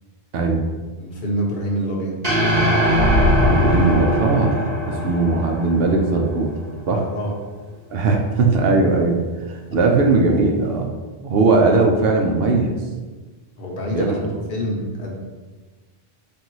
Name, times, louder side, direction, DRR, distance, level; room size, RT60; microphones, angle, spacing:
voice 1, 1.0-2.2 6.9-7.3 9.7-10.7 11.4-11.6 13.6-14.2 14.5-15.1, equal, 55° left, -2 dB, 1.0 m, -27 dB
sound 1, 2.2-6.6, equal, 35° right, 1.1 m, -21 dB
sound 2, 2.8-4.5, equal, 85° right, 1.0 m, -21 dB
voice 2, 3.5-4.6 4.9-6.5 6.9-7.0 7.9-9.2 9.5-10.9 11.2-12.8 13.9-14.3, right 3 dB, 65° right, 2 dB, 0.8 m, -19 dB
3.9 x 2.6 x 4.5 m, 1.3 s
omnidirectional pair, 1.1 m